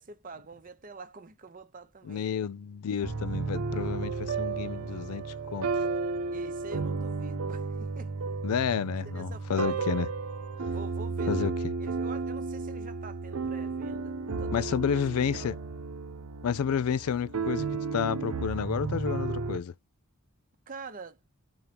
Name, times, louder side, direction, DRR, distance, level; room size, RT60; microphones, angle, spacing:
voice 1, 0.0-2.2 6.3-8.2 9.0-10.0 10.7-11.5 11.8-14.8 15.2-15.6 20.7-21.2, right 4 dB, 40° right, 0.7 m, -46 dB
voice 2, 2.0-5.7 8.4-10.1 11.3-11.5 14.5-15.6 16.4-17.7 17.9-19.7, left 7 dB, 85° left, 0.4 m, -30 dB
sound 1, 3.0-19.6, right 4 dB, 80° right, 0.6 m, -33 dB
3.9 x 2.9 x 3.4 m
head